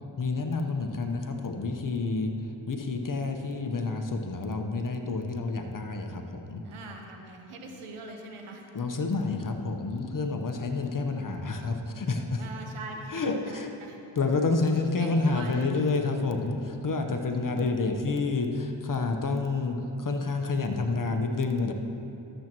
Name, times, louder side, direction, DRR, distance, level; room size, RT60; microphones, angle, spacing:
voice 1, 0.2-6.6 8.7-12.4 13.1-13.7 14.1-21.7, left 3 dB, 40° left, 5 dB, 1.0 m, -29 dB
voice 2, 6.6-8.6 12.4-14.0 15.0-15.9, right 3 dB, 75° right, 2 dB, 1.2 m, -43 dB
13.5 x 7.6 x 3.0 m, 2.8 s
supercardioid pair, 45°, 50 cm